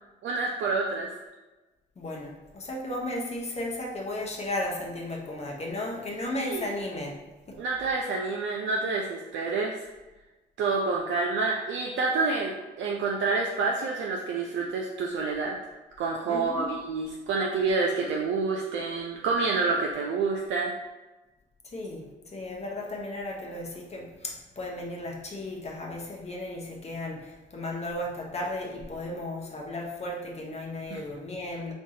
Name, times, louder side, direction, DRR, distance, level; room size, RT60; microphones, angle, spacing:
voice 1, 0.2-1.1 6.4-6.7 7.6-9.8 10.6-15.6 16.0-20.7 30.9-31.0, right 4 dB, 70° right, -1 dB, 0.4 m, -28 dB
voice 2, 2.0-7.2 7.5-7.6 16.3-16.7 21.7-31.7, left 1 dB, 35° left, -1 dB, 0.7 m, -35 dB
4.4 x 2.3 x 2.7 m, 1.1 s
cardioid pair, 90°, 20 cm